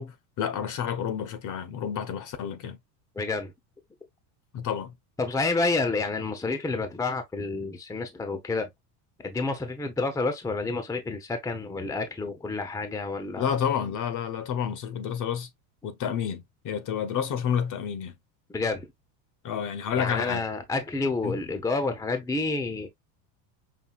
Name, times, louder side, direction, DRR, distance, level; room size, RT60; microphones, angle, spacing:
voice 1, 0.0-2.8 4.5-4.9 13.4-15.5 15.8-18.1 19.4-20.4 21.2-21.4, left 8 dB, 40° left, 0.8 m, -30 dB
voice 2, 3.2-3.5 5.2-8.7 9.2-13.5 18.5-18.9 19.9-22.9, left 3 dB, 5° left, 0.7 m, -29 dB
5.8 x 2.7 x 2.4 m
supercardioid pair, 120°, 50 cm